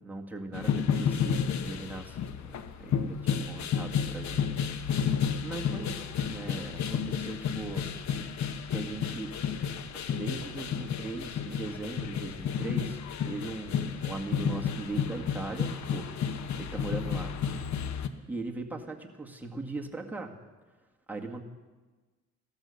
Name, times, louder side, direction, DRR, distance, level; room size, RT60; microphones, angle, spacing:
voice 1, 0.0-2.3 2.8-5.1 5.4-7.9 8.6-9.4 9.9-16.3 16.6-17.4 18.3-20.3 21.1-21.4, right 2 dB, 5° right, 0 dB, 2.0 m, -39 dB
sound 1, 0.5-18.1, left 7 dB, 65° left, 1.0 m, -31 dB
15.5 x 13.5 x 6.7 m, 1.3 s
cardioid pair, 90°, 30 cm